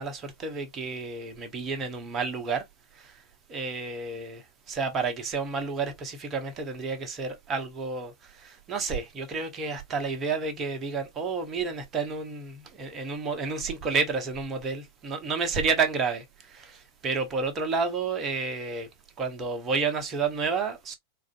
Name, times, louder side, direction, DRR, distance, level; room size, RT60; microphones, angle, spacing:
voice 1, 0.0-2.6 2.9-3.2 3.5-18.9 19.2-20.9, right 4 dB, 25° right, 0.9 m, -30 dB
4.0 x 2.5 x 2.5 m
figure-of-eight pair, 90°, 0 cm